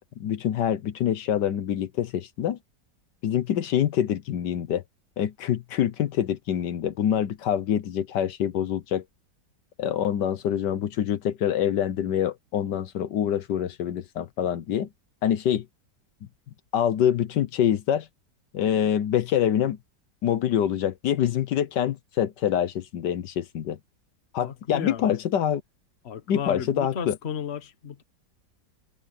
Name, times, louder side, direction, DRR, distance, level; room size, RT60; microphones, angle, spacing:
voice 1, 0.2-2.6 3.2-4.8 5.2-9.0 9.8-14.9 15.2-15.6 16.7-18.1 18.5-19.8 20.2-23.8 24.3-25.6 26.3-27.2, left 10 dB, 75° left, 1.5 m, -25 dB
voice 2, 24.4-25.1 26.0-28.0, left 7 dB, 40° left, 1.3 m, -34 dB
omnidirectional pair, 1.9 m